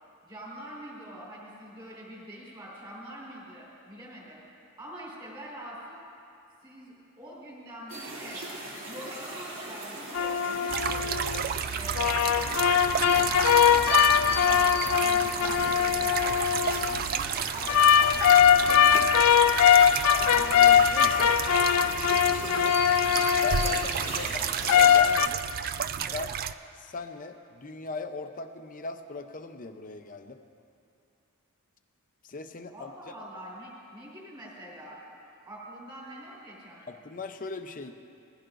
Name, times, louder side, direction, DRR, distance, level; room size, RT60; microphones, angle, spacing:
voice 1, 0.2-4.4 4.8-6.0 6.6-8.4 8.9-11.3 11.7-12.1 12.6-19.2 32.7-35.0 35.5-36.9, right 1 dB, 20° right, -5 dB, 4.0 m, -44 dB
sound 1, 7.9-25.0, right 2 dB, 60° right, 2.8 m, -39 dB
sound 2, 10.1-11.4 12.0-17.0 17.7-23.9 24.7-25.3, left 8 dB, 75° left, 0.4 m, -21 dB
sound 3, 10.7-26.5, right 8 dB, 40° right, 0.3 m, -32 dB
voice 2, 20.2-21.4 21.9-22.8 23.4-25.5 26.1-26.4 26.7-30.4 32.2-33.1 36.9-37.9, left 3 dB, 35° left, 7 dB, 0.7 m, -39 dB
20.5 x 15.0 x 2.5 m, 2.6 s
head